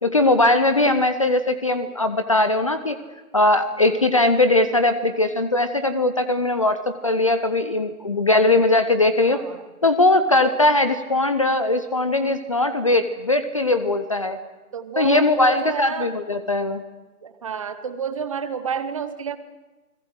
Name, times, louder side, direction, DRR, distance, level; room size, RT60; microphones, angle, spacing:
voice 1, 0.0-3.0 3.3-9.4 9.8-14.4 15.0-16.8, left 2 dB, 20° left, 11 dB, 0.7 m, -20 dB
voice 2, 9.3-9.6 14.7-16.1 17.2-19.4, right 6 dB, 20° right, 11 dB, 0.9 m, -29 dB
29.0 x 21.5 x 6.4 m, 1.2 s
figure-of-eight pair, 150°, 46 cm